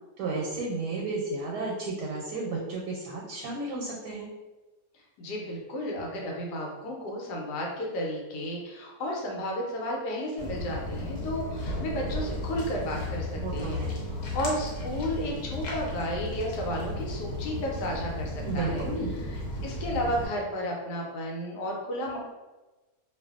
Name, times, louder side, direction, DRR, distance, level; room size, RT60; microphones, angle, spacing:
voice 1, 0.2-4.3 13.3-14.0 18.4-19.1, right 3 dB, 85° right, -2 dB, 1.2 m, -33 dB
voice 2, 4.9-13.8 14.1-18.8 19.2-22.2, equal, 85° left, -1 dB, 1.2 m, -33 dB
Walk footsteps, 10.4-20.3, left 1 dB, 70° left, 1.1 m, -34 dB
2.6 x 2.4 x 2.3 m, 1.2 s
omnidirectional pair, 1.7 m